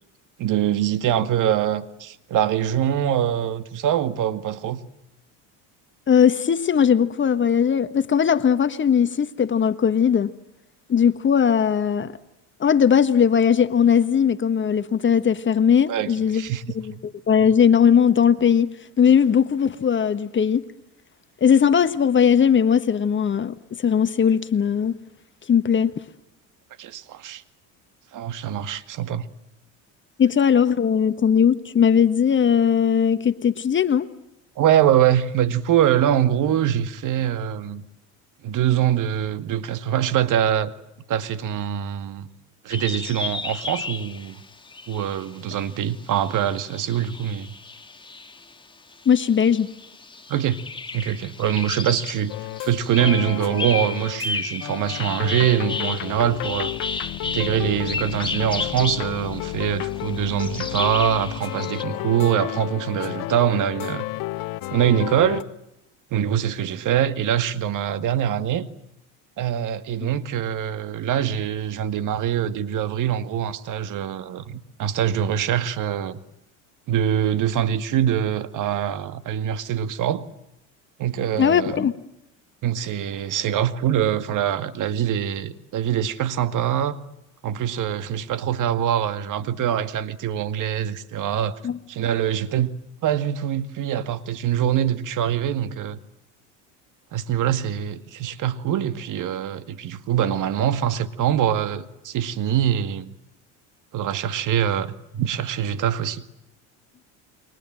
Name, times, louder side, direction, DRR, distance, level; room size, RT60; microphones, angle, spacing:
voice 1, 0.4-4.8 15.9-16.7 26.8-27.4 28.1-29.2 34.6-37.8 38.4-40.7 41.1-42.3 42.6-44.4 44.9-47.5 50.3-50.6 50.9-52.3 52.6-56.7 57.3-64.0 64.7-65.5 66.1-68.7 69.4-76.2 76.9-80.2 81.0-81.8 82.6-87.0 87.4-91.6 91.9-92.7 93.0-96.0 97.1-103.1 103.9-106.2, right 10 dB, 55° right, 2.2 m, -24 dB
voice 2, 6.1-10.3 10.9-12.1 12.6-16.4 16.7-18.7 19.0-20.6 21.4-24.9 25.5-25.9 30.2-34.1 49.0-49.7 81.4-81.9 91.6-91.8, left 7 dB, 30° left, 1.5 m, -19 dB
sound 1, 42.7-48.5 48.9-61.8, left 4 dB, 15° left, 2.1 m, -33 dB
sound 2, 52.3-54.3 54.6-65.4, left 17 dB, 60° left, 1.1 m, -32 dB
30.0 x 23.5 x 7.7 m
supercardioid pair, 105°, 37 cm